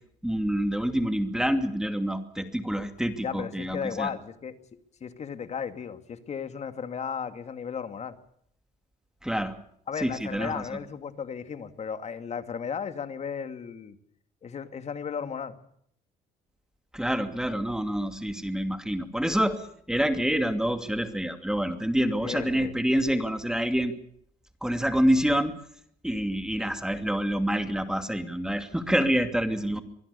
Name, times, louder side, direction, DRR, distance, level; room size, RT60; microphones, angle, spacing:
voice 1, 0.2-4.1 9.2-9.6 10.0-10.6 16.9-23.9 24.6-25.5 26.0-29.8, equal, 5° right, 8 dB, 2.6 m, -27 dB
voice 2, 3.2-4.6 5.0-8.1 9.9-14.0 14.4-15.6 22.2-22.7, left 7 dB, 40° left, 9 dB, 2.4 m, -35 dB
25.0 x 20.5 x 6.9 m, 0.66 s
cardioid pair, 110°, 17 cm